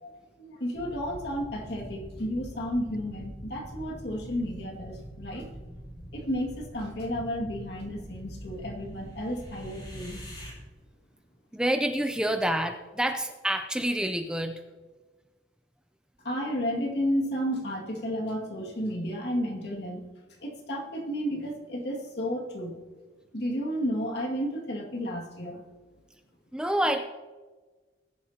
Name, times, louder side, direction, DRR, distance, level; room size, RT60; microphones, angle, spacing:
voice 1, 0.0-5.5 6.1-10.2 16.2-20.0 20.4-22.8 23.3-25.6, equal, 60° left, 0 dB, 2.2 m, -32 dB
sound 1, 0.7-10.5, equal, 25° left, 3.4 m, -44 dB
voice 2, 11.5-14.6 26.5-27.0, right 1 dB, 5° right, 6 dB, 0.5 m, -27 dB
20.0 x 10.5 x 2.9 m, 1.3 s
head